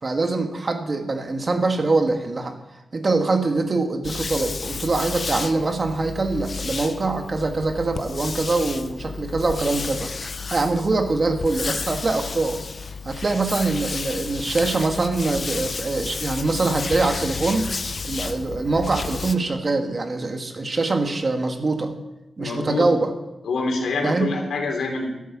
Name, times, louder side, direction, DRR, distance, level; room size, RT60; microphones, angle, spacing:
voice 1, 0.0-2.6 2.9-10.1 10.5-12.6 13.1-17.7 18.0-21.9 22.4-23.1 24.0-24.3, right 3 dB, 35° right, 5 dB, 1.8 m, -23 dB
sound 1, 4.0-19.3, left 4 dB, 45° left, 0.8 m, -32 dB
voice 2, 22.4-22.9 23.4-25.1, left 3 dB, 90° left, 2 dB, 3.5 m, -26 dB
13.0 x 11.0 x 7.4 m, 0.97 s
wide cardioid pair, 105°, 0 cm